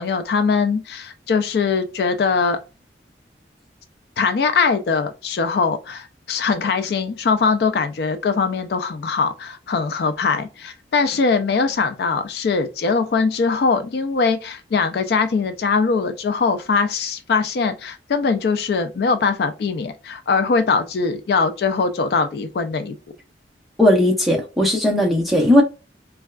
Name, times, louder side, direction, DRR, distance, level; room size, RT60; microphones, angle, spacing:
voice 1, 0.0-2.6 4.2-23.0, left 4 dB, 60° left, 0.3 m, -21 dB
voice 2, 23.8-25.6, left 1 dB, ahead, 0.6 m, -16 dB
3.3 x 2.2 x 2.2 m
head